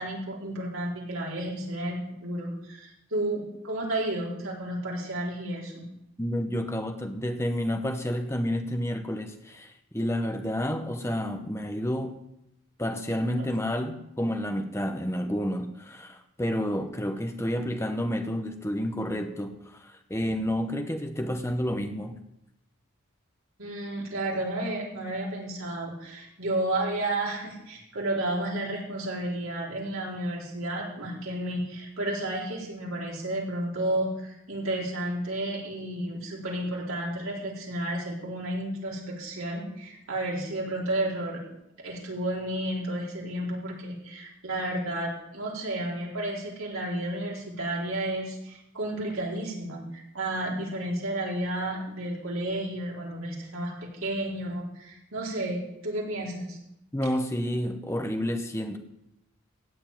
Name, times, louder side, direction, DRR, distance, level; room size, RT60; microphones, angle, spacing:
voice 1, 0.0-5.8 23.6-41.4 41.8-56.6, right 1 dB, 80° right, -3 dB, 4.2 m, -32 dB
voice 2, 6.2-12.2 12.8-22.2 56.9-58.8, equal, 15° left, 6 dB, 1.0 m, -30 dB
16.0 x 5.4 x 9.2 m, 0.83 s
head